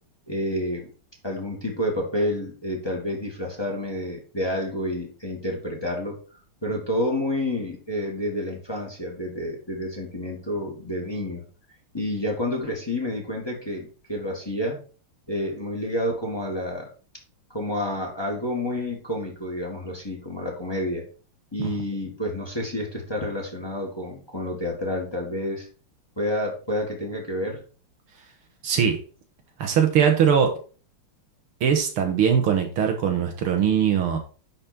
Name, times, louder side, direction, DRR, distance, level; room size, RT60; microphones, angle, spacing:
voice 1, 0.3-0.9 1.2-6.2 6.6-11.4 11.9-14.8 15.3-16.9 17.5-21.0 21.5-25.7 26.2-27.6, left 1 dB, 10° left, -2 dB, 2.1 m, -29 dB
voice 2, 28.6-29.0 29.6-30.6 31.6-34.2, right 8 dB, 80° right, 4 dB, 2.2 m, -21 dB
10.5 x 4.4 x 4.3 m, 0.37 s
omnidirectional pair, 2.4 m